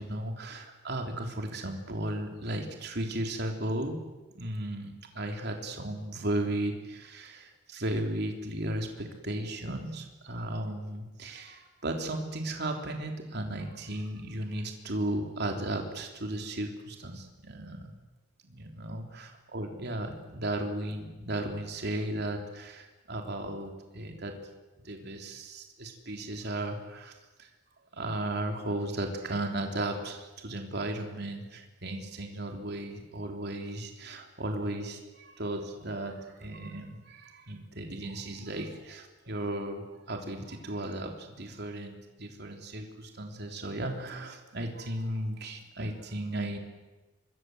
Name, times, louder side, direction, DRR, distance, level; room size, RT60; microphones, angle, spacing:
voice 1, 0.0-4.0 4.4-17.9 18.4-24.4 24.8-27.1 27.4-27.5 27.9-46.6, right 1 dB, 55° right, 3 dB, 3.4 m, -35 dB
26.0 x 24.0 x 7.9 m, 1.1 s
head